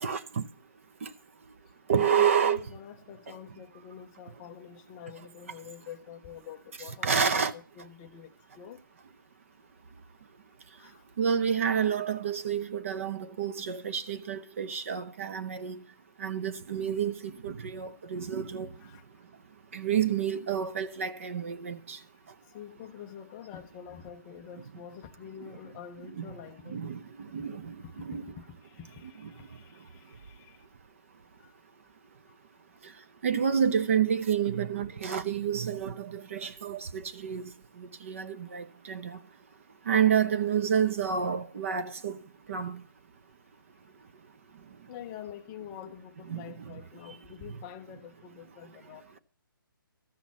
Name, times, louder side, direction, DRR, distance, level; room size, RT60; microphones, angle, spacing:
voice 1, 0.0-0.4 1.0-1.1 1.9-2.6 7.0-7.5 11.2-15.8 16.2-18.7 19.7-22.0 25.4-25.5 26.2-26.3 26.7-28.2 29.2-29.3 33.2-37.4 37.8-39.2 39.9-42.2 42.5-42.8 46.3-46.8, right 7 dB, 35° right, 0.6 m, -29 dB
voice 2, 2.2-8.8 10.8-11.0 18.8-19.0 22.4-26.8 27.8-28.1 28.4-30.6 31.4-31.5 44.9-49.2, left 9 dB, 10° left, 0.5 m, -47 dB
13.0 x 5.9 x 7.3 m
hypercardioid pair, 170°, 12 cm